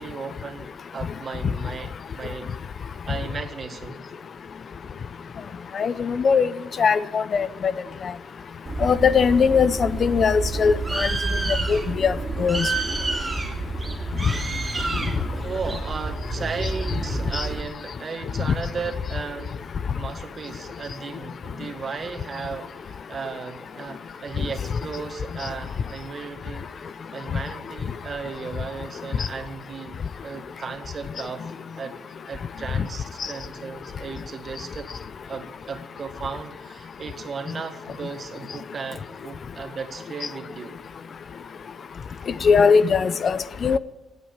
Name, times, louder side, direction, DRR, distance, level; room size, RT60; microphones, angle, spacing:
voice 1, 0.0-2.5 2.8-4.0 15.3-26.7 27.1-31.5 31.8-32.0 32.3-34.9 35.3-40.8, right 5 dB, 40° right, 7 dB, 1.9 m, -35 dB
voice 2, 5.7-6.5 6.8-7.7 8.8-11.1 11.7-12.7 17.3-17.5 42.4-43.8, left 6 dB, 50° left, 16 dB, 0.6 m, -20 dB
Bird, 8.7-17.6, right 3 dB, 25° right, 3.3 m, -29 dB
17.0 x 8.9 x 9.0 m, 1.1 s
cardioid pair, 90°, 0 cm